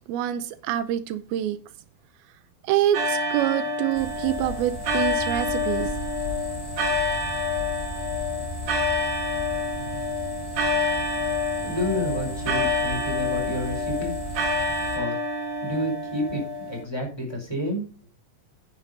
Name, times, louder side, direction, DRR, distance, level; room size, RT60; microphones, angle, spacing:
voice 1, 0.1-1.6 2.6-5.9, right 12 dB, 85° right, 2.7 m, -26 dB
sound 1, 2.9-16.8, left 2 dB, 55° right, 2.7 m, -28 dB
sound 2, 3.9-15.0, left 4 dB, 30° left, 2.3 m, -36 dB
voice 2, 11.6-14.1 14.9-15.2 15.6-17.9, equal, 5° left, 4.2 m, -30 dB
9.9 x 6.7 x 5.4 m
omnidirectional pair, 4.3 m